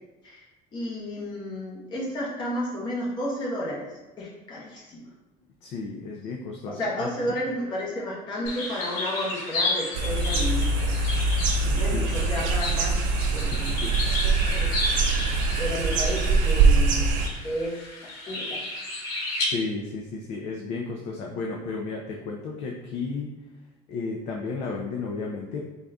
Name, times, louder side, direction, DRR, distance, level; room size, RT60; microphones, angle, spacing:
voice 1, 0.7-5.0 6.7-10.9 11.7-12.9 13.3-13.8 14.0-14.1 14.4-14.7 15.6-17.1 17.4-17.8 18.3-18.5, equal, 30° left, -4 dB, 1.0 m, -32 dB
voice 2, 5.6-7.1 11.6-12.1 13.4-13.9 19.4-23.4 23.9-25.6, left 4 dB, 45° left, 0 dB, 0.4 m, -33 dB
sound 1, 8.5-19.5, left 2 dB, 85° left, 0.9 m, -33 dB
sound 2, 9.9-17.3, right 3 dB, 50° right, 0.5 m, -23 dB
3.9 x 2.3 x 3.5 m, 1.1 s
cardioid pair, 170°, 16 cm